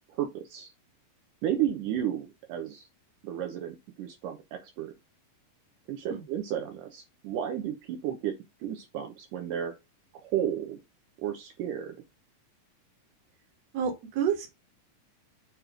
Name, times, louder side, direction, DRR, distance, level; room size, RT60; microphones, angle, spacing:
voice 1, 0.2-0.7 1.4-2.9 3.2-4.9 5.9-8.4 8.6-9.8 10.2-10.8 11.2-11.9, right 10 dB, 75° right, 2.3 m, -32 dB
voice 2, 13.7-14.5, right 8 dB, 55° right, 2.4 m, -29 dB
6.9 x 3.1 x 5.0 m
omnidirectional pair, 3.9 m